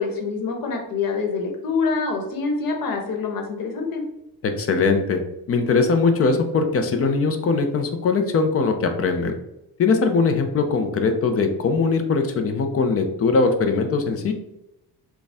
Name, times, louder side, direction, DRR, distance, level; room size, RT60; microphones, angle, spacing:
voice 1, 0.0-4.0, left 4 dB, 65° left, 2 dB, 1.2 m, -25 dB
voice 2, 4.4-5.2 5.5-9.4 9.8-14.3, left 4 dB, 40° left, 6 dB, 0.6 m, -21 dB
6.4 x 2.3 x 3.5 m, 0.87 s
cardioid pair, 150°, 37 cm